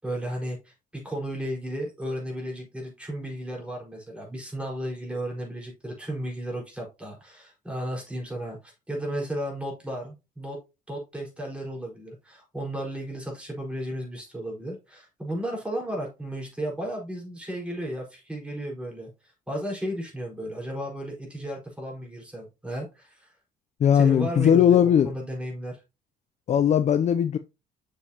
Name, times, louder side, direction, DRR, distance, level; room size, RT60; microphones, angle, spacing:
voice 1, 0.0-10.6 10.9-23.3 23.9-25.8, right 1 dB, 5° right, 4.7 m, -34 dB
voice 2, 23.8-25.1 26.5-27.4, left 9 dB, 40° left, 0.5 m, -19 dB
7.2 x 6.9 x 2.9 m
cardioid pair, 110°, 17 cm